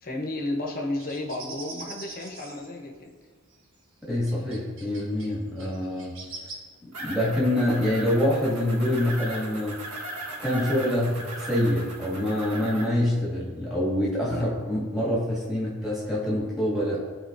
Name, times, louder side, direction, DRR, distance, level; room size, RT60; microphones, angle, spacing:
voice 1, 0.0-3.1 14.3-14.5, left 1 dB, 40° left, 0 dB, 1.0 m, -32 dB
sound 1, 1.0-2.7 3.5-3.6 4.2-5.3 5.6-6.5, right 3 dB, 60° right, 1.2 m, -42 dB
voice 2, 4.0-6.2 6.8-9.8 10.4-17.0, left 1 dB, ahead, -7 dB, 2.0 m, -26 dB
sound 2, 6.9-12.8, right 1 dB, 85° right, 1.4 m, -38 dB
12.0 x 4.5 x 2.6 m, 1.4 s
head